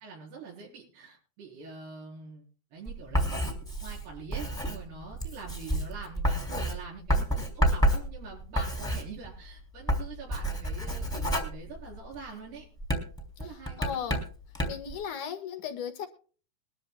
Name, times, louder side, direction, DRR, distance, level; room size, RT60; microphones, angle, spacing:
voice 1, 0.0-2.4 2.7-3.3 3.8-12.7 13.4-13.9, right 4 dB, 85° right, -3 dB, 6.6 m, -44 dB
Writing, 2.9-9.5 9.8-12.3 12.8-14.9, equal, ahead, 2.3 m, -29 dB
voice 2, 13.4-14.2 14.7-16.1, left 8 dB, 60° left, 8 dB, 2.7 m, -36 dB
22.0 x 13.0 x 2.3 m, 0.40 s
omnidirectional pair, 4.5 m